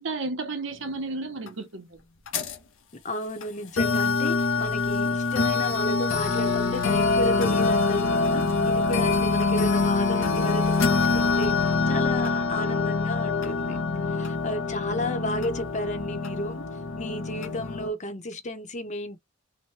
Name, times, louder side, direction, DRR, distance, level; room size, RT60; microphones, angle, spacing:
voice 1, 0.0-2.0, right 3 dB, 70° right, 0.8 m, -33 dB
sound 1, 1.5-1.6 2.3-2.6 3.4-3.5 3.8-17.9, left 4 dB, 90° left, 0.7 m, -25 dB
voice 2, 3.0-13.8 14.1-16.6 17.0-19.2, left 1 dB, 40° left, 0.8 m, -33 dB
2.8 x 2.1 x 3.0 m
head